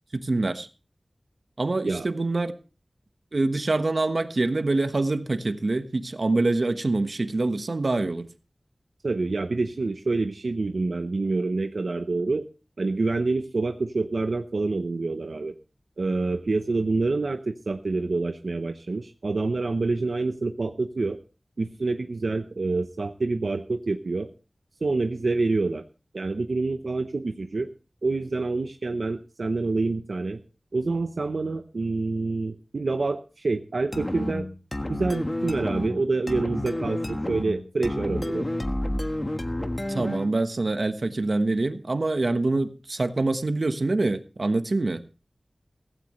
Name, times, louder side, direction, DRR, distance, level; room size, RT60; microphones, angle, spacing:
voice 1, 0.1-0.7 1.6-2.5 3.3-8.3 39.9-45.0, right 2 dB, 60° right, 9 dB, 1.2 m, -25 dB
voice 2, 9.0-12.4 12.8-15.5 16.0-21.2 21.6-24.3 24.8-25.8 26.1-27.7 28.0-30.4 30.7-34.5 34.9-38.5, right 3 dB, 80° right, 7 dB, 0.8 m, -27 dB
sound 1, 33.9-40.4, left 1 dB, 25° left, 1.4 m, -30 dB
16.0 x 15.5 x 3.2 m, 0.34 s
wide cardioid pair, 70°, 0 cm